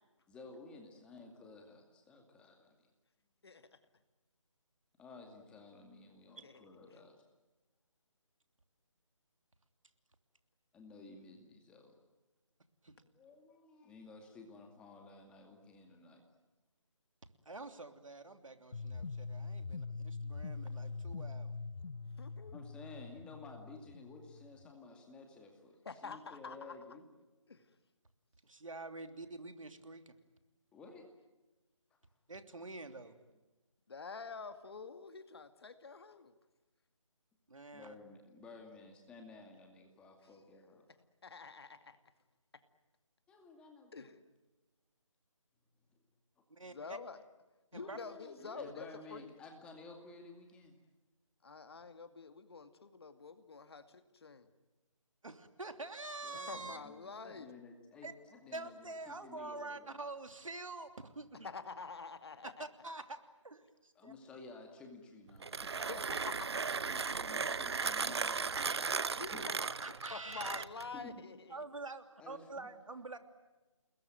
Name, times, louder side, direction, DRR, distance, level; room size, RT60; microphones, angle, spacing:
voice 1, 0.3-2.5 5.0-7.2 10.7-11.9 13.0-16.2 22.5-27.0 27.4-27.6 30.7-31.1 37.7-40.9 43.3-44.1 46.5-46.6 47.7-50.8 56.2-60.1 64.0-65.7 66.8-69.0 69.3-69.5 70.9-71.1 71.6-71.7 72.2-72.7, left 3 dB, 5° left, 3 dB, 2.3 m, -54 dB
voice 2, 17.4-21.6 28.4-30.1 32.3-33.2 37.5-37.9 46.5-47.0 47.7-48.0 55.2-56.8 58.0-58.1 58.5-61.5 62.6-63.2 63.4-64.1 69.8-70.7 71.5-73.2, right 3 dB, 80° right, 8 dB, 3.1 m, -46 dB
sound 1, 18.7-24.7, left 4 dB, 70° left, 0.9 m, -43 dB
voice 3, 22.2-22.6 25.8-26.8 27.5-27.7 33.9-36.3 41.2-42.0 43.9-44.2 46.7-47.2 47.7-49.3 51.4-54.5 56.3-57.5 61.4-62.7 65.9-66.6 69.2-69.3 69.6-71.6, left 4 dB, 50° left, 9 dB, 2.3 m, -47 dB
Mechanisms, 65.3-71.0, right 5 dB, 55° right, 0.9 m, -36 dB
29.5 x 21.0 x 9.1 m, 1.1 s
figure-of-eight pair, 165°, 17 cm